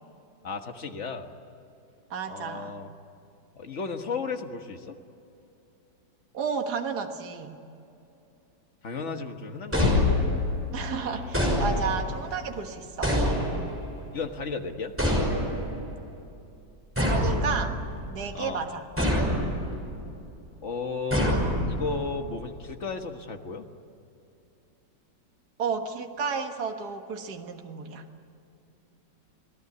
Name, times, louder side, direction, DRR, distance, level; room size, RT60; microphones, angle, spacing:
voice 1, 0.4-1.3 2.3-2.9 3.6-5.0 8.8-10.2 10.9-11.6 14.1-14.9 18.3-18.6 20.6-21.4 21.7-23.6, left 4 dB, 40° left, 5 dB, 1.7 m, -34 dB
voice 2, 2.1-2.7 6.3-7.6 10.7-13.2 17.0-17.8 18.1-18.9 25.6-28.1, right 5 dB, 60° right, 4 dB, 2.0 m, -32 dB
sound 1, 9.7-10.6 11.3-12.2 13.0-13.9 15.0-15.8 17.0-18.0 19.0-19.7 21.1-22.0, equal, 5° right, 5.9 m, -26 dB
sound 2, 9.8-12.4, left 6 dB, 60° left, 1.7 m, -28 dB
27.5 x 18.0 x 9.6 m, 2.7 s
omnidirectional pair, 1.9 m